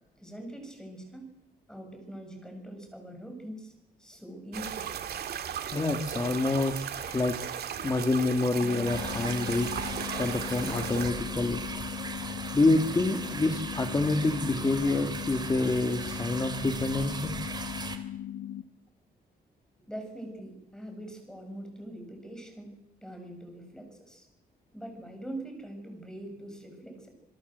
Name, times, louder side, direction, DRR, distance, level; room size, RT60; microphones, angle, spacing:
voice 1, 0.2-1.3 1.7-3.7 4.0-5.0 19.9-22.7 23.0-24.3 24.7-27.1, right 1 dB, 5° left, 4 dB, 7.1 m, -43 dB
sound 1, 4.5-11.1, right 8 dB, 70° right, 2.3 m, -36 dB
voice 2, 5.7-6.8 7.1-7.4 7.8-11.6 12.5-17.3, left 2 dB, 20° left, 7 dB, 1.7 m, -27 dB
sound 2, 8.6-18.6, left 11 dB, 90° left, 1.6 m, -39 dB
sound 3, 8.9-18.0, right 4 dB, 25° right, 2.7 m, -38 dB
27.0 x 22.0 x 8.0 m, 0.88 s
wide cardioid pair, 150°, 17 cm